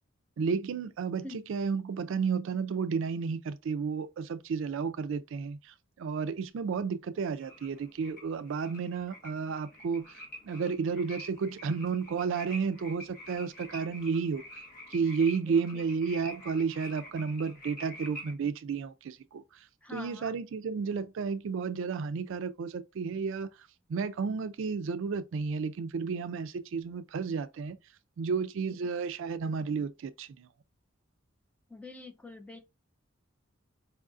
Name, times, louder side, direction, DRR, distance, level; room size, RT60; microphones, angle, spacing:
voice 1, 0.4-5.6 6.0-14.4 14.9-19.4 19.9-23.5 23.9-27.8 28.2-30.5, right 5 dB, 65° right, 0.4 m, -32 dB
sound 1, 7.4-18.3, equal, 45° left, 1.1 m, -47 dB
voice 2, 19.8-20.3 31.7-32.6, left 2 dB, 5° left, 0.4 m, -45 dB
4.6 x 2.4 x 2.4 m
head